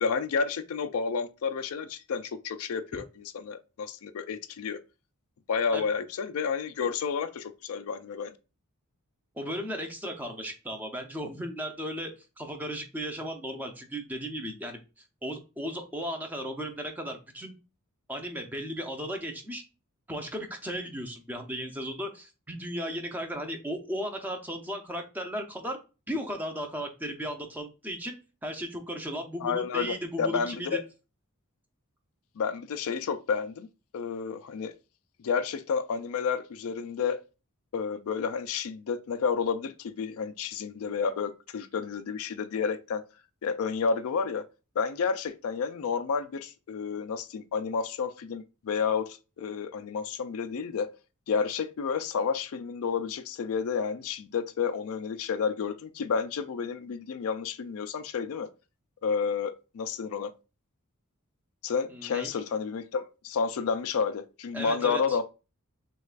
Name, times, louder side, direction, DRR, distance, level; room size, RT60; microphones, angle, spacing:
voice 1, 0.0-4.8 5.5-8.3 29.4-30.8 32.4-33.7 33.9-34.7 35.2-37.2 37.7-43.0 43.4-44.5 44.8-51.0 51.3-58.5 59.0-60.3 61.6-65.2, left 5 dB, 70° left, 0.4 m, -30 dB
voice 2, 9.4-12.1 12.4-14.8 15.2-17.5 18.1-19.6 20.1-25.8 26.1-28.2 28.4-30.8 61.9-62.3 64.5-65.0, equal, 10° right, 0.6 m, -35 dB
6.3 x 2.3 x 2.4 m
head